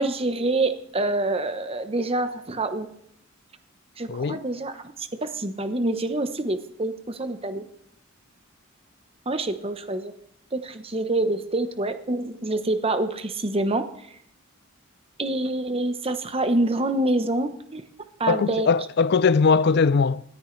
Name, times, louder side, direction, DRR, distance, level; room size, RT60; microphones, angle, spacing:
voice 1, 0.0-2.9 4.0-7.7 9.3-10.1 10.5-14.2 15.2-17.8 18.2-18.7, right 2 dB, 30° right, 0.9 m, -26 dB
voice 2, 4.1-4.4 18.3-20.2, left 5 dB, 50° left, 0.4 m, -20 dB
19.5 x 14.0 x 3.3 m
head